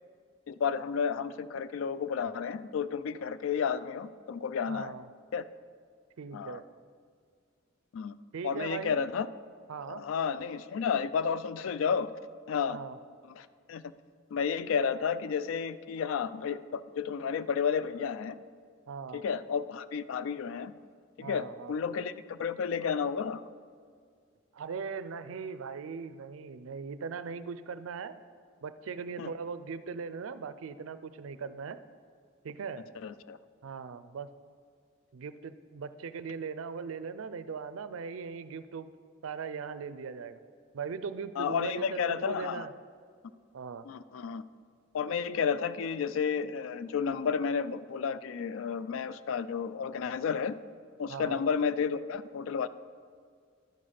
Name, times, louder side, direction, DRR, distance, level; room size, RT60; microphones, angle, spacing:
voice 1, 0.5-4.9 5.3-5.4 6.3-6.6 7.9-8.2 8.4-9.3 9.9-12.1 12.5-12.8 13.3-13.8 14.3-18.4 19.1-20.7 21.2-23.4 29.2-29.3 33.0-33.4 41.4-42.7 43.8-44.4 44.9-50.6 51.0-52.7, left 6 dB, 75° left, 15 dB, 0.3 m, -32 dB
voice 2, 4.7-5.1 6.2-6.6 8.3-9.0 9.7-10.0 12.7-13.0 18.9-19.2 21.2-21.8 24.5-28.2 28.6-31.8 32.4-32.8 33.6-34.3 35.1-38.9 39.2-40.4 40.7-42.7 43.5-43.8 51.1-51.4, right 5 dB, 80° right, 13 dB, 0.4 m, -39 dB
11.0 x 5.0 x 5.6 m, 2.1 s
head